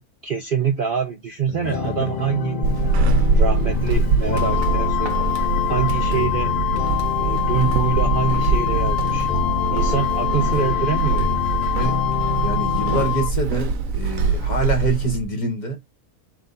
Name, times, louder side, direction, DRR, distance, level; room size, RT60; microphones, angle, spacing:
voice 1, 0.2-3.0 3.3-6.6 7.2-9.3 9.7-11.5, right 7 dB, 80° right, 0.4 m, -26 dB
voice 2, 1.5-2.3 9.4-9.5 11.8-12.0 12.4-15.8, right 2 dB, 30° left, 1.2 m, -26 dB
sound 1, 1.6-13.1, left 7 dB, 70° left, 0.4 m, -28 dB
Walk footsteps / Squeak, 2.6-15.3, right 3 dB, 65° right, 1.0 m, -23 dB
Wind instrument woodwind instrument, 4.3-13.3, left 13 dB, 90° left, 1.1 m, -25 dB
3.9 x 2.7 x 3.9 m
omnidirectional pair, 1.6 m